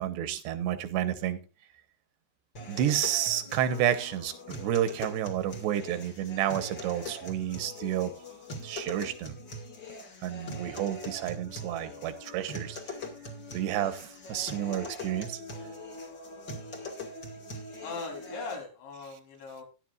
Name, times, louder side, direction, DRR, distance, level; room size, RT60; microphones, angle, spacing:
voice 1, 0.0-1.4 2.7-8.1 8.6-9.4 10.2-13.0 13.5-15.4, right 11 dB, 80° right, 10 dB, 3.2 m, -30 dB
sound 1, 2.6-18.6, left 1 dB, 35° left, 2.0 m, -42 dB
voice 2, 17.8-19.6, left 4 dB, 85° left, 1 dB, 6.2 m, -39 dB
15.5 x 11.0 x 2.5 m, 0.30 s
omnidirectional pair, 5.0 m